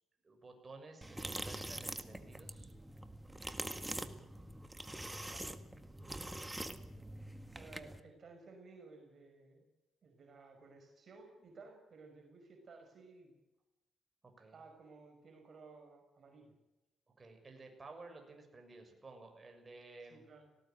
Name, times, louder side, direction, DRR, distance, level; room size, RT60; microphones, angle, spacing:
voice 1, 0.2-2.7 14.2-14.6 17.2-20.2, right 3 dB, 30° right, 4 dB, 6.7 m, -54 dB
sound 1, 1.0-8.0, right 1 dB, 10° right, 1.8 m, -44 dB
voice 2, 7.5-9.6 10.0-13.3 14.5-16.5 20.1-20.5, right 3 dB, 55° right, 3 dB, 5.6 m, -56 dB
19.0 x 18.0 x 9.2 m, 0.99 s
cardioid pair, 85°, 0 cm